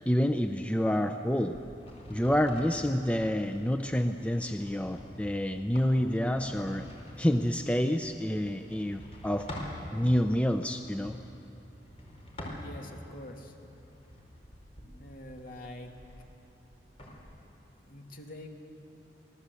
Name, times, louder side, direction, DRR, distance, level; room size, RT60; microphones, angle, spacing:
voice 1, 0.1-1.6 2.1-6.9 7.2-9.5 9.9-11.2, equal, 5° left, 7 dB, 0.6 m, -28 dB
sound 1, 1.5-9.8 10.6-13.1 13.6-17.2, left 1 dB, 35° left, 4.7 m, -47 dB
voice 2, 12.6-13.5 15.0-15.9 17.8-18.5, left 1 dB, 50° left, 2 dB, 2.6 m, -45 dB
26.0 x 18.5 x 8.3 m, 2.9 s
head